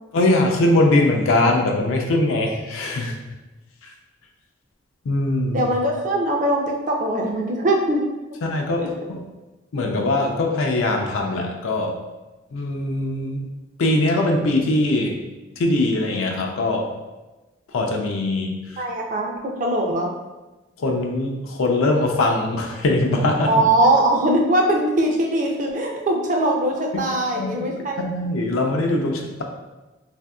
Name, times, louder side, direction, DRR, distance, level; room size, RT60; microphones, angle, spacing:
voice 1, 0.1-3.2 3.8-3.9 5.0-5.7 8.4-9.2 9.7-12.0 12.5-13.5 13.8-15.2 15.6-16.9 17.7-18.9 20.8-23.5 26.9-27.0 27.3-27.6 28.0-29.4, left 2 dB, 90° left, 1 dB, 0.4 m, -21 dB
voice 2, 5.5-8.0 18.8-20.1 23.5-28.0, right 1 dB, 40° right, 0 dB, 0.4 m, -21 dB
3.4 x 2.5 x 2.3 m, 1.1 s
head